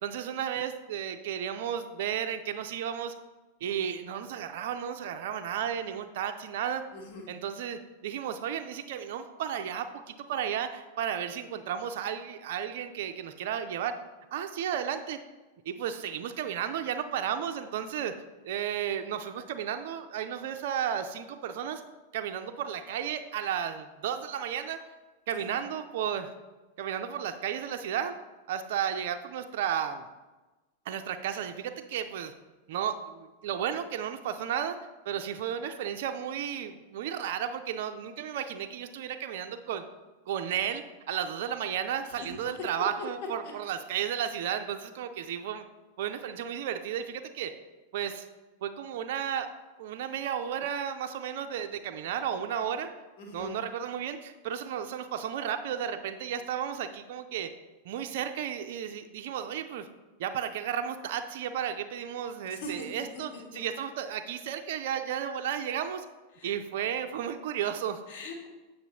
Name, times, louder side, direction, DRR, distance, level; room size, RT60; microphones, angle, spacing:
voice 1, 0.0-3.1 3.6-6.9 7.3-14.0 14.3-15.2 15.7-18.1 18.5-21.8 22.1-24.8 25.3-26.3 26.8-28.2 28.5-30.1 30.9-32.3 32.7-34.8 35.1-39.8 40.3-45.6 46.0-47.5 47.9-48.3 48.6-49.5 49.8-52.9 53.3-57.5 57.8-59.9 60.2-66.1 66.4-68.0, right 9 dB, 55° right, 7 dB, 0.4 m, -33 dB
voice 2, 6.9-7.2 25.3-25.5 42.2-42.3 43.4-43.5 53.2-53.5 62.5-63.6 66.3-66.5 68.1-68.5, left 1 dB, 50° left, 1 dB, 1.2 m, -42 dB
7.9 x 5.3 x 2.9 m, 1.2 s
figure-of-eight pair, 90°, 0 cm